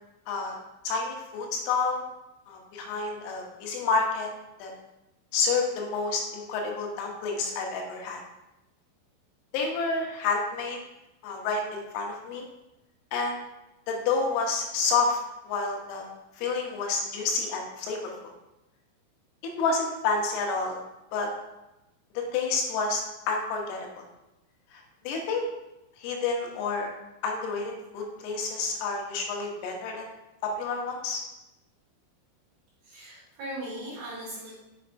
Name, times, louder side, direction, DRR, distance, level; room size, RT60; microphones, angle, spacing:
voice 1, 0.3-0.6 0.9-2.0 2.5-4.3 4.6-4.7 5.3-8.2 9.5-10.8 11.2-12.4 13.1-13.5 13.9-15.2 15.5-16.1 16.4-18.0 19.6-20.8 21.1-21.3 22.3-24.0 24.7-25.4 26.0-26.9 27.2-30.1 30.4-31.2, left 4 dB, 85° left, 1 dB, 3.7 m, -29 dB
voice 2, 32.8-34.5, right 1 dB, 55° right, -8 dB, 3.2 m, -38 dB
7.0 x 6.4 x 2.5 m, 0.96 s
omnidirectional pair, 5.9 m